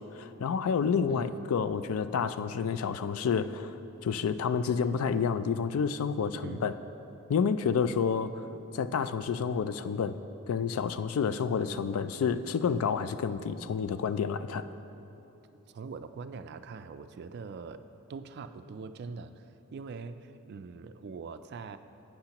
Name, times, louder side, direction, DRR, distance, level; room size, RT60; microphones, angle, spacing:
voice 1, 0.1-3.7 4.0-6.7 7.3-8.3 8.7-10.2 10.5-14.6, left 6 dB, 75° left, 13 dB, 0.3 m, -29 dB
voice 2, 1.1-1.5 6.4-6.7 15.7-17.8 18.1-21.8, right 4 dB, 50° right, 10 dB, 0.3 m, -43 dB
11.5 x 8.7 x 2.9 m, 3.0 s
head